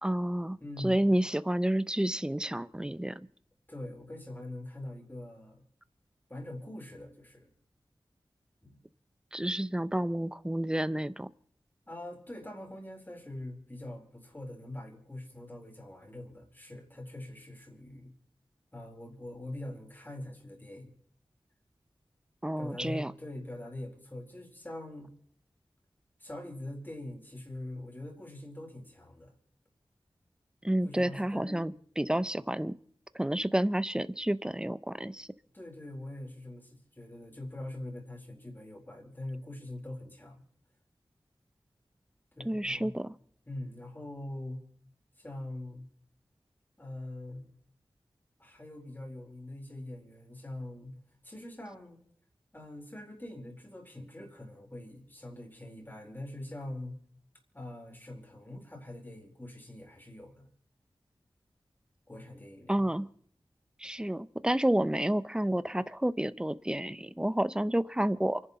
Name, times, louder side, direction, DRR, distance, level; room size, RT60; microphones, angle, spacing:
voice 1, 0.0-3.2 9.3-11.3 22.4-23.1 30.6-32.7 33.1-35.3 42.4-43.1 62.7-63.1 63.8-68.4, right 1 dB, 10° right, 16 dB, 0.7 m, -30 dB
voice 2, 0.6-1.1 3.7-5.6 6.3-7.5 8.6-8.8 11.9-18.1 18.7-20.9 22.6-25.1 26.2-29.3 30.8-31.7 35.5-40.4 42.3-42.9 43.5-44.6 45.2-45.8 46.8-47.5 48.4-50.9 51.2-52.0 52.5-56.9 57.5-60.5 62.1-63.0, left 1 dB, 20° left, 1 dB, 4.3 m, -43 dB
28.5 x 11.0 x 4.2 m, 0.62 s
wide cardioid pair, 65°, 9 cm